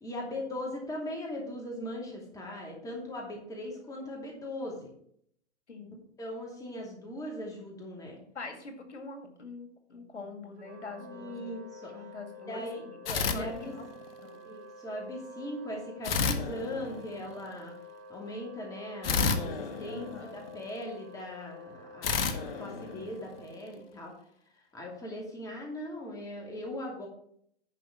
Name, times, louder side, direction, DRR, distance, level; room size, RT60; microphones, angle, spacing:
voice 1, 0.0-4.9 6.2-8.2 11.0-11.9 12.5-13.7 14.4-17.7 18.1-24.1 24.7-27.1, left 1 dB, 10° left, -1 dB, 2.7 m, -39 dB
voice 2, 5.7-6.0 8.3-13.0 13.3-13.8 14.2-14.4 19.9-20.4, left 4 dB, 85° left, 5 dB, 2.2 m, -44 dB
Wind instrument woodwind instrument, 10.6-24.0, left 1 dB, 65° right, 3.6 m, -49 dB
sound 1, 13.1-14.2 16.0-17.4 19.0-20.7 22.0-23.6, left 5 dB, 55° left, 1.4 m, -31 dB
10.5 x 5.1 x 5.9 m, 0.66 s
hypercardioid pair, 130°, 34 cm